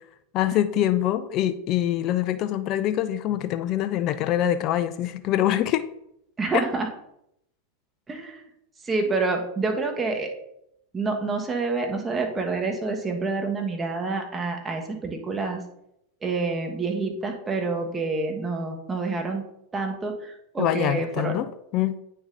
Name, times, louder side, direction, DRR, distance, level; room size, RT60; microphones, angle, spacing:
voice 1, 0.3-5.8 20.6-22.0, left 12 dB, 45° left, 12 dB, 0.4 m, -24 dB
voice 2, 6.4-6.9 8.1-8.4 8.8-10.3 10.9-15.6 16.2-19.4 19.7-21.3, right 3 dB, 20° right, 2 dB, 1.3 m, -27 dB
8.7 x 6.4 x 2.6 m, 0.78 s
hypercardioid pair, 95°, 0 cm